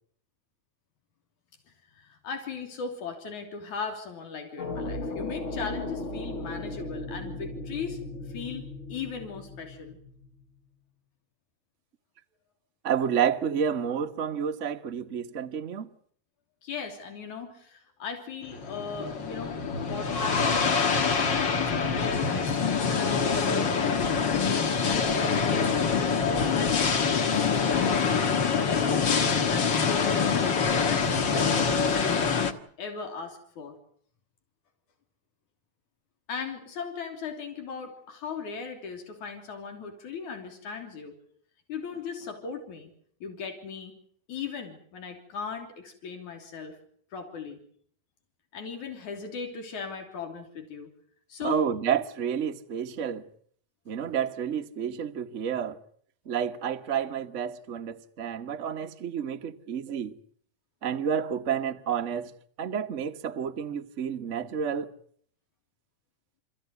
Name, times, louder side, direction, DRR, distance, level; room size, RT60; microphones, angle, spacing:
voice 1, 1.9-8.0 8.3-10.0 16.6-21.2 21.5-27.5 27.7-28.2 28.5-29.2 29.5-32.5 32.8-33.8 36.3-41.2 41.7-42.9 43.2-43.9 44.3-46.8 47.1-47.6 48.5-50.9 51.3-51.7, left 5 dB, 85° left, 4.6 m, -38 dB
sound 1, 4.6-10.4, left 2 dB, 65° left, 0.7 m, -36 dB
voice 2, 12.8-15.9 51.4-53.3 53.9-55.8 56.2-60.2 60.8-62.3 62.6-64.9, right 8 dB, 60° right, 0.7 m, -30 dB
sound 2, 18.5-32.5, left 5 dB, 45° left, 1.9 m, -25 dB
28.5 x 15.0 x 9.4 m
omnidirectional pair, 3.3 m